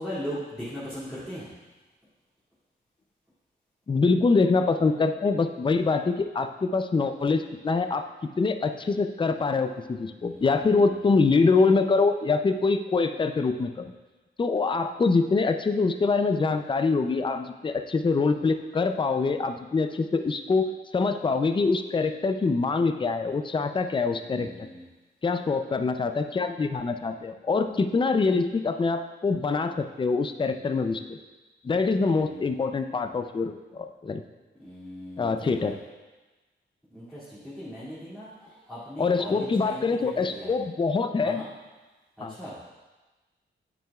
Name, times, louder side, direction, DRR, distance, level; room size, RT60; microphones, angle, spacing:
voice 1, 0.0-1.5 10.2-10.8 24.3-24.9 32.3-32.5 34.6-35.7 36.9-40.6 41.2-41.5 42.2-42.6, equal, ahead, -12 dB, 2.4 m, -39 dB
voice 2, 3.9-8.0 8.4-13.9 14.4-24.7 25.2-31.2 31.6-34.2 35.2-35.7 39.0-41.4 42.2-42.4, left 4 dB, 25° left, 8 dB, 0.5 m, -24 dB
9.3 x 9.1 x 2.4 m, 1.2 s
wide cardioid pair, 110°, 20 cm